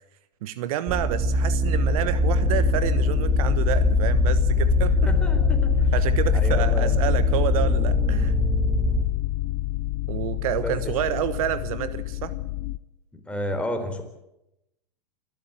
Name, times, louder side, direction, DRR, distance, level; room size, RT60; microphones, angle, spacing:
voice 1, 0.4-5.1 5.9-8.4 10.1-12.3, right 12 dB, 60° right, 14 dB, 1.2 m, -29 dB
sound 1, 0.9-9.0, right 1 dB, 20° right, 2.6 m, -24 dB
sound 2, 2.2-12.8, left 17 dB, 50° left, 0.8 m, -25 dB
voice 2, 5.1-5.9 6.3-7.0 10.6-10.7 13.1-14.0, left 1 dB, 5° left, 4 dB, 4.0 m, -31 dB
27.0 x 12.5 x 9.1 m, 0.89 s
hypercardioid pair, 100°, 20 cm